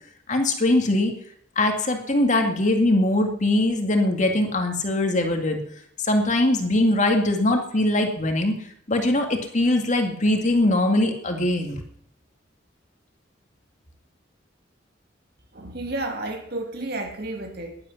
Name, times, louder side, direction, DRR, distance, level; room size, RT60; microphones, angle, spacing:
voice 1, 0.3-1.1 1.6-5.6 6.0-8.5 8.9-11.8, left 1 dB, 40° left, 4 dB, 2.2 m, -21 dB
voice 2, 15.5-17.8, right 2 dB, 60° right, 4 dB, 2.5 m, -31 dB
12.0 x 11.0 x 9.8 m, 0.72 s
head